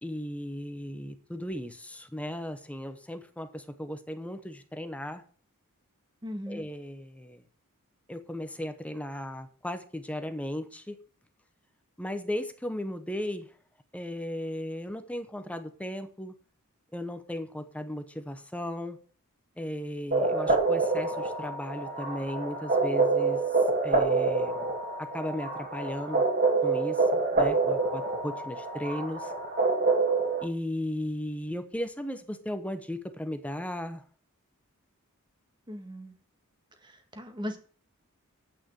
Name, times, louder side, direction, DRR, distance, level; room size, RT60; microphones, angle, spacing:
voice 1, 0.0-5.2 6.5-7.4 8.1-11.0 12.0-13.5 13.9-16.3 16.9-19.0 19.6-23.4 23.8-24.7 25.0-26.2 26.6-29.3 30.4-34.0, left 1 dB, 5° left, 9 dB, 0.8 m, -36 dB
voice 2, 6.2-6.6 35.7-36.1 36.8-37.6, equal, 20° right, 5 dB, 1.8 m, -38 dB
sound 1, 20.1-30.4, right 3 dB, 45° right, 2.6 m, -27 dB
9.0 x 5.8 x 7.5 m, 0.42 s
head